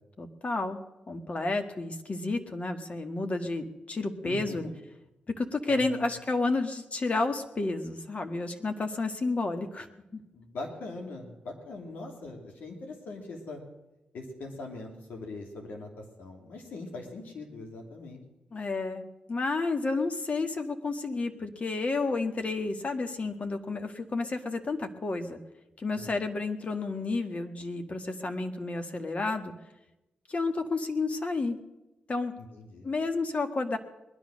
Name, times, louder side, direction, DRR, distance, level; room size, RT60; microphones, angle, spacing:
voice 1, 0.2-0.8 1.1-4.7 5.4-9.9 10.1-10.2 18.5-19.0 19.3-25.4 25.8-29.5 30.3-31.6 32.1-32.3 32.8-33.8, left 3 dB, 45° left, 6 dB, 1.8 m, -31 dB
voice 2, 4.2-4.7 5.7-6.1 10.3-13.6 14.1-18.2 18.6-18.7 25.9-26.1 32.4-32.9, left 2 dB, 75° left, 2 dB, 2.9 m, -41 dB
20.5 x 10.5 x 6.4 m, 0.98 s
supercardioid pair, 45°, 3 cm